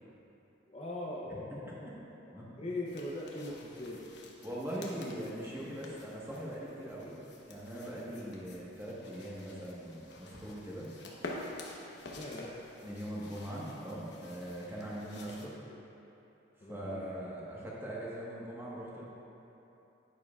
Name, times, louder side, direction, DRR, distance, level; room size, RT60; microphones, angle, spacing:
voice 1, 0.7-4.0 8.1-8.3 12.0-12.5 15.4-15.5 16.6-17.3, left 1 dB, 30° left, -4 dB, 0.7 m, -42 dB
sound 1, 2.9-15.5, left 2 dB, 60° left, 1.0 m, -49 dB
voice 2, 4.4-7.1 7.5-10.9 12.8-15.5 16.7-19.1, right 1 dB, 15° right, -6 dB, 1.3 m, -41 dB
10.0 x 9.5 x 2.4 m, 2.9 s
head